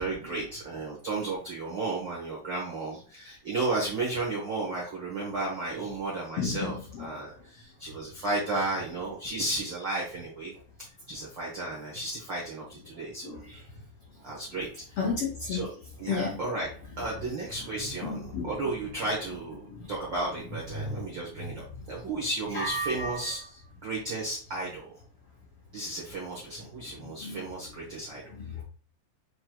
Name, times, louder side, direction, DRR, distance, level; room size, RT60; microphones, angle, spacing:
voice 1, 0.0-10.5 10.8-13.4 14.2-15.0 15.5-15.7 16.0-16.7 17.0-24.9 25.7-28.2, right 2 dB, 90° right, -4 dB, 1.0 m, -33 dB
voice 2, 6.4-6.7 7.0-7.1 13.2-13.4 15.0-15.6 16.1-16.4 17.6-17.7 18.0-18.5 19.7-19.9 20.8-21.2 22.5-23.3 27.2-27.4 28.3-28.6, left 3 dB, 90° left, -2 dB, 1.3 m, -32 dB
7.5 x 3.1 x 2.3 m, 0.43 s
omnidirectional pair, 4.1 m